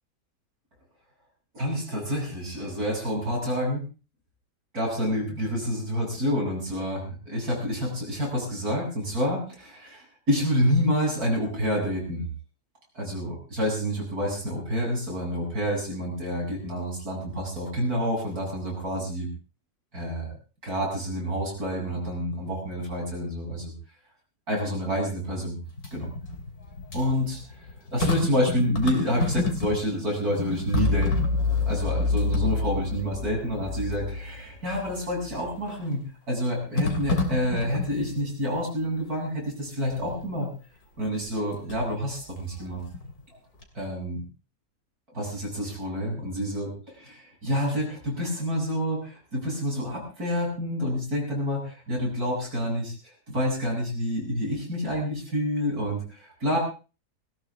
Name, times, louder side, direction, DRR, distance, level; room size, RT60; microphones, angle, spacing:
voice 1, 1.5-3.8 4.7-12.3 13.0-19.3 19.9-20.3 20.6-23.7 24.5-25.6 25.9-26.1 26.9-27.7 27.9-31.3 31.7-40.5 41.0-42.8 43.7-44.2 45.1-52.9 53.3-56.6, equal, 65° right, -2 dB, 8.6 m, -28 dB
sound 1, 25.7-30.0 30.2-33.1 33.6-33.7 35.3-35.8 36.8-38.3 39.9-40.3 41.2-42.0 42.4-43.4 43.6-43.7, left 2 dB, 65° left, 3.7 m, -31 dB
sound 2, 30.7-35.5, left 3 dB, 25° right, 3.2 m, -27 dB
20.0 x 17.0 x 3.7 m, 0.35 s
omnidirectional pair, 1.7 m